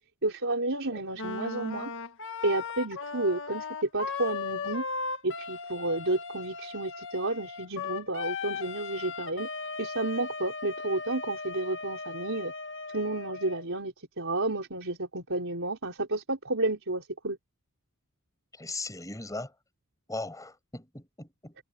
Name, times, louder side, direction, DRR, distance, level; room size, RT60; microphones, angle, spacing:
voice 1, 0.2-1.9 2.4-3.7 3.9-4.8 5.2-9.5 9.8-12.5 12.9-17.4, right 2 dB, 60° right, 4.8 m, -31 dB
Wind instrument woodwind instrument, 1.1-13.6, left 4 dB, 60° left, 1.9 m, -37 dB
voice 2, 18.5-19.5 20.1-21.6, left 2 dB, 15° left, 6.0 m, -38 dB
head